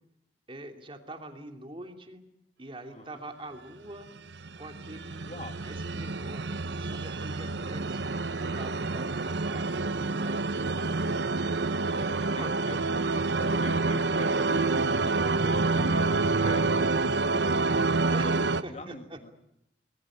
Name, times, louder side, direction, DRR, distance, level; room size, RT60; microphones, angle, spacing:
voice 1, 0.5-2.2 2.6-4.1 4.6-8.1 8.5-10.9 11.9-12.6 13.3-13.6 18.1-19.2, right 1 dB, 30° right, 4 dB, 2.8 m, -44 dB
sound 1, 4.3-18.6, right 3 dB, 75° right, 1.0 m, -28 dB
voice 2, 5.2-5.6 12.3-12.8 13.4-19.3, left 1 dB, 35° left, 6 dB, 2.4 m, -44 dB
27.0 x 20.5 x 8.6 m, 0.79 s
head